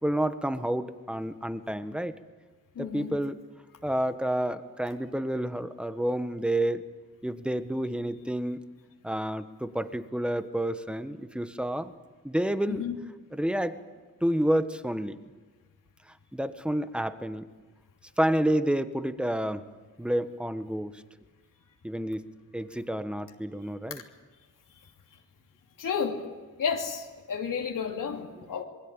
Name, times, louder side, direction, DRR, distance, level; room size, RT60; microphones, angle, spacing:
voice 1, 0.0-2.1 2.8-3.3 3.8-6.8 7.2-8.6 9.0-11.9 12.2-12.9 13.3-13.8 14.2-15.2 16.3-17.4 18.2-19.6 20.0-21.0 21.8-22.2 22.5-24.0, right 1 dB, 5° right, 11 dB, 1.3 m, -29 dB
voice 2, 2.7-3.2 12.7-13.0 25.8-26.2 26.6-28.6, left 6 dB, 85° left, 2 dB, 3.0 m, -31 dB
27.0 x 21.5 x 9.1 m, 1.3 s
wide cardioid pair, 110°, 31 cm